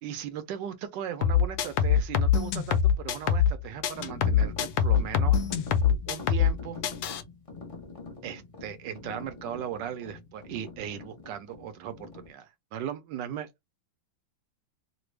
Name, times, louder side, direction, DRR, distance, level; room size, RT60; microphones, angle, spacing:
voice 1, 0.0-5.4 6.1-6.8 8.2-13.5, right 9 dB, 75° right, 1.2 m, -37 dB
sound 1, 1.2-3.6 3.8-6.6 6.8-7.2, left 7 dB, 70° left, 0.9 m, -23 dB
sound 2, 3.9-12.3, left 4 dB, 35° left, 0.5 m, -44 dB
3.3 x 2.2 x 3.2 m
omnidirectional pair, 2.1 m